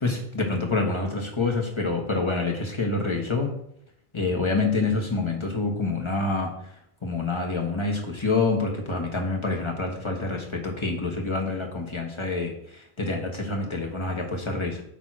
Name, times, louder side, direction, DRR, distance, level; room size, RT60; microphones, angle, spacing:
voice 1, 0.0-3.5 4.1-6.5 7.0-14.8, left 3 dB, 25° left, 1 dB, 1.3 m, -27 dB
8.8 x 3.0 x 6.0 m, 0.72 s
omnidirectional pair, 1.1 m